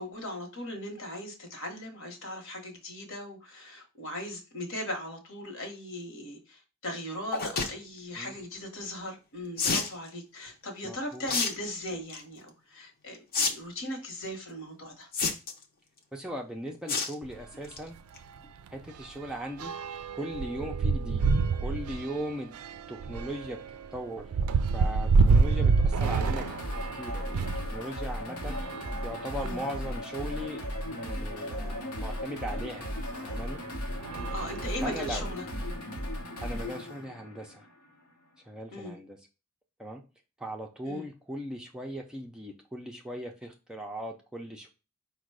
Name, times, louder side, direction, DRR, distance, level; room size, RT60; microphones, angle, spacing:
voice 1, 0.0-15.1 29.4-29.6 34.3-35.4 38.7-39.0 40.8-41.0, left 1 dB, 60° left, 4 dB, 1.1 m, -38 dB
sound 1, 7.3-7.7 9.6-9.9 11.3-11.5 11.9-12.2 13.3-13.5 13.8-13.9 15.1-15.6 16.9-17.1 17.5-17.8 18.2-18.3 18.4-18.5, left 4 dB, 40° left, 0.7 m, -28 dB
voice 2, 10.8-11.3 16.1-17.9 18.7-19.7 20.1-21.3 21.6-22.6 22.9-23.6 23.9-24.3 24.6-28.6 29.0-30.6 30.9-32.9 33.2-33.6 34.4-35.2 36.4-37.7 38.5-39.2 39.8-40.0 40.4-44.7, equal, 5° right, 1 dB, 0.4 m, -38 dB
sound 2, 17.2-17.4 17.8-18.0 18.2-27.7 28.4-29.8 30.5-30.6 30.8-30.9 32.6-32.7 33.3-33.6 34.0-35.3, right 4 dB, 75° right, 0.4 m, -28 dB
sound 3, 26.0-38.0, equal, 80° left, 0.9 m, -36 dB
5.0 x 2.2 x 4.7 m, 0.30 s
head